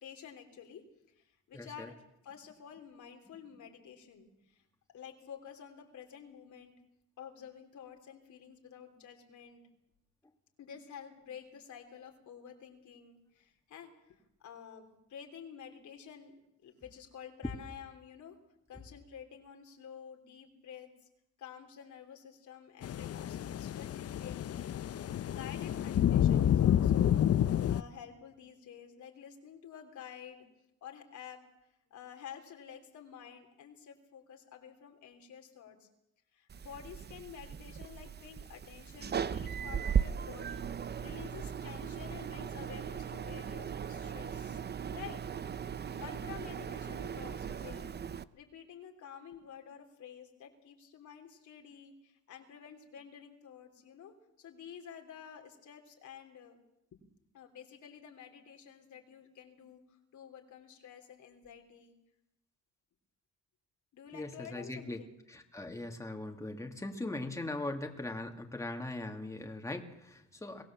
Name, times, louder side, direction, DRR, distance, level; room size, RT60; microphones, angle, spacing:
voice 1, 0.0-4.6 4.9-6.7 7.2-9.6 10.6-13.9 14.4-16.4 16.6-18.4 18.7-21.1 21.4-27.2 27.7-30.5 30.8-31.5 31.9-35.9 36.3-44.6 44.9-45.2 45.9-56.6 57.3-62.0 63.9-65.2, left 8 dB, 70° left, 3 dB, 3.5 m, -50 dB
voice 2, 1.5-1.9 17.4-17.5 64.1-65.0 65.3-70.6, left 2 dB, 10° left, 3 dB, 2.5 m, -40 dB
sound 1, 22.8-27.8, left 10 dB, 55° left, 0.7 m, -29 dB
sound 2, 36.5-48.2, right 7 dB, 35° right, 0.7 m, -38 dB
23.5 x 17.0 x 7.4 m, 0.83 s
cardioid pair, 90°, 30 cm